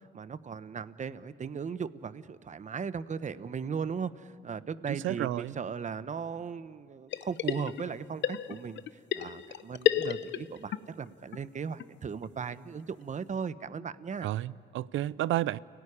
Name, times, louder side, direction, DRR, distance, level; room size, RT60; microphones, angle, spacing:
voice 1, 0.1-14.3, right 6 dB, 40° right, 0.9 m, -37 dB
voice 2, 4.9-5.6 14.2-15.6, right 14 dB, 80° right, 0.6 m, -31 dB
sound 1, 7.1-8.0 8.2-10.8 11.1-11.2 11.3-11.4 11.8-11.9 12.2-12.3 12.5-12.6 13.0-13.1, left 11 dB, 65° left, 0.8 m, -31 dB
29.5 x 18.0 x 9.9 m
cardioid pair, 90°, 20 cm